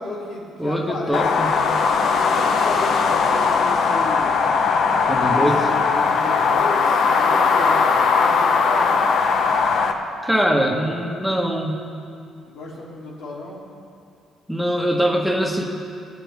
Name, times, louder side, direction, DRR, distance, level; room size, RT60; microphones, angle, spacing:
voice 1, 0.0-1.5 2.1-4.4 5.2-8.9 12.5-13.6, left 2 dB, 90° left, -5 dB, 3.1 m, -33 dB
voice 2, 0.6-1.5 5.1-5.6 10.2-11.8 14.5-15.6, equal, ahead, 0 dB, 1.3 m, -22 dB
sound 1, 1.1-9.9, left 5 dB, 60° left, 0.9 m, -19 dB
21.0 x 7.6 x 3.6 m, 2.4 s
cardioid pair, 120°, 0 cm